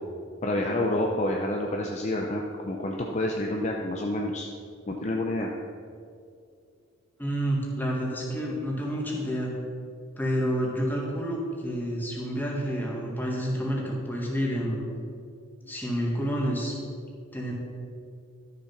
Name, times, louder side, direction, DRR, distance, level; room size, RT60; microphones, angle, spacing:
voice 1, 0.4-4.5 4.9-5.5, left 1 dB, 35° left, 0 dB, 0.7 m, -28 dB
voice 2, 7.2-9.5 10.2-14.9 15.7-16.7 17.3-17.5, equal, 10° left, -2 dB, 1.9 m, -29 dB
12.5 x 7.0 x 5.8 m, 2.3 s
head